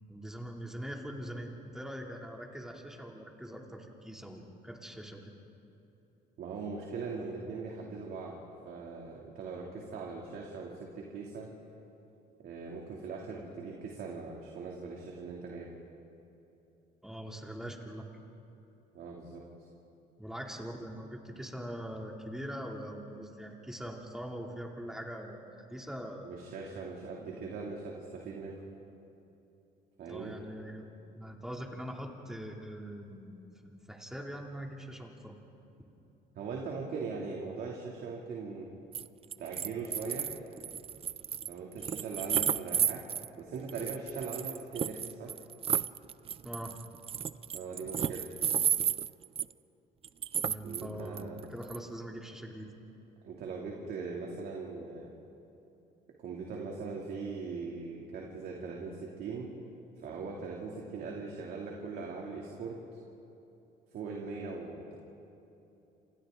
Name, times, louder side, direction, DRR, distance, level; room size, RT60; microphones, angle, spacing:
voice 1, 0.1-5.2 17.0-18.1 20.2-26.3 27.2-27.4 30.1-30.8 31.1-35.4 46.4-46.8 50.4-52.7, equal, 5° right, 0 dB, 3.0 m, -42 dB
voice 2, 6.4-8.4 8.6-11.5 12.4-15.7 18.9-19.4 26.2-28.6 30.0-30.4 36.3-38.7 39.4-40.3 41.5-43.0 43.4-45.3 47.5-48.2 50.6-51.4 53.2-55.1 56.2-59.5 60.0-62.8 63.9-65.0, right 4 dB, 65° right, -2 dB, 2.9 m, -40 dB
sound 1, 38.9-39.1 39.3-43.3 43.7-49.5 50.0-50.9 51.2-51.8, right 8 dB, 35° right, 0.5 m, -32 dB
28.5 x 27.0 x 3.9 m, 3.0 s
cardioid pair, 110°, 17 cm